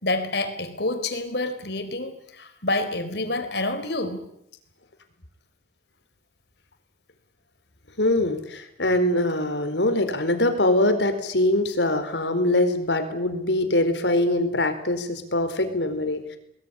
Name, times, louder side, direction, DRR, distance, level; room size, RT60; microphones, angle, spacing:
voice 1, 0.0-4.3, left 2 dB, 65° left, 9 dB, 4.3 m, -28 dB
voice 2, 8.0-16.4, left 1 dB, 85° left, 8 dB, 4.4 m, -23 dB
22.5 x 21.5 x 9.9 m, 0.79 s
head